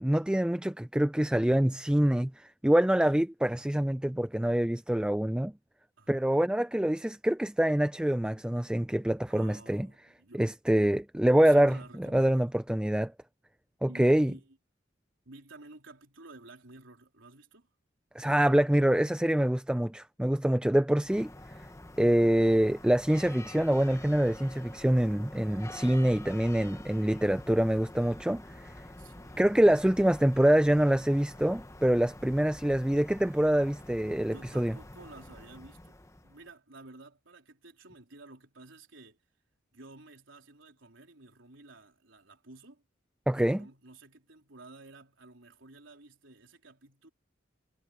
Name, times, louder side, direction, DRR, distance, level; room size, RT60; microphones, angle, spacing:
voice 1, 0.0-5.5 6.1-9.9 10.3-13.1 13.8-14.3 18.2-21.3 22.0-28.7 29.4-34.7 43.3-43.6, right 1 dB, 5° right, 0.3 m, -25 dB
voice 2, 9.3-10.4 11.4-12.5 13.9-14.6 15.3-17.7 25.8-26.3 29.0-29.4 34.3-39.2 39.7-42.8 43.4-47.1, right 2 dB, 80° right, 3.7 m, -52 dB
sound 1, 21.0-36.5, left 1 dB, 15° left, 1.1 m, -47 dB
head